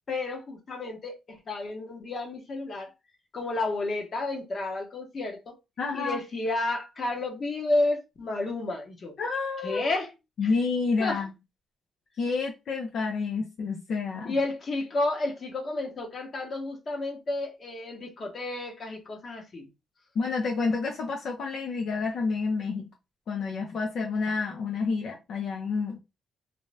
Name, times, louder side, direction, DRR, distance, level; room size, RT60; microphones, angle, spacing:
voice 1, 0.1-2.9 3.3-5.6 5.9-9.1 9.6-10.1 11.0-11.2 14.2-19.7, left 2 dB, 45° left, 0.9 m, -31 dB
voice 2, 5.8-6.2 9.2-9.9 10.4-11.3 12.2-14.4 20.2-22.9 23.3-26.0, left 4 dB, 60° left, 0.6 m, -29 dB
2.7 x 2.2 x 3.2 m
cardioid pair, 90°, 0 cm